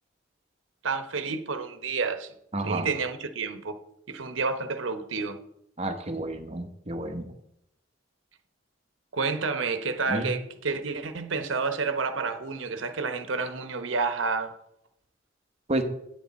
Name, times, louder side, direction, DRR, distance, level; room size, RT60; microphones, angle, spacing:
voice 1, 0.8-2.3 2.6-3.8 4.1-5.4 9.1-14.5, right 4 dB, 85° right, 0.9 m, -30 dB
voice 2, 2.5-2.9 5.8-7.3 10.1-10.3 15.7-15.8, right 1 dB, 35° right, 1.1 m, -30 dB
9.4 x 9.0 x 4.2 m
head